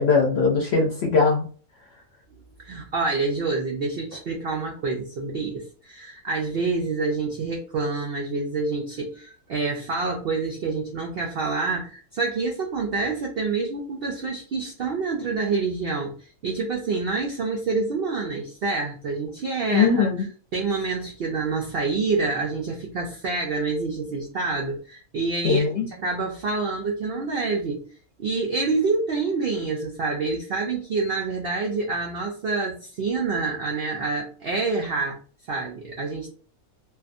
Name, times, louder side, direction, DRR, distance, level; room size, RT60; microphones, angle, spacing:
voice 1, 0.0-1.4 19.7-20.3 25.4-25.9, left 5 dB, 60° left, 0 dB, 0.7 m, -20 dB
voice 2, 2.6-20.1 20.5-27.9 28.2-35.2 35.5-36.3, right 4 dB, 75° right, 0 dB, 0.5 m, -27 dB
2.5 x 2.3 x 2.5 m, 0.41 s
omnidirectional pair, 1.6 m